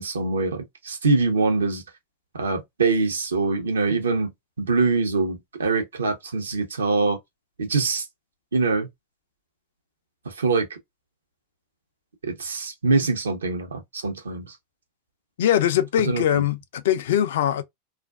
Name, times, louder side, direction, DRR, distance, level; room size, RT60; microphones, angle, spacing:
voice 1, 0.0-1.8 2.3-4.3 4.6-7.2 7.6-8.1 8.5-8.9 10.2-10.8 12.2-14.6 16.0-16.4, right 3 dB, 85° right, 0.6 m, -24 dB
voice 2, 15.4-17.6, left 10 dB, 70° left, 0.4 m, -22 dB
2.4 x 2.2 x 2.2 m
hypercardioid pair, 90°, 0 cm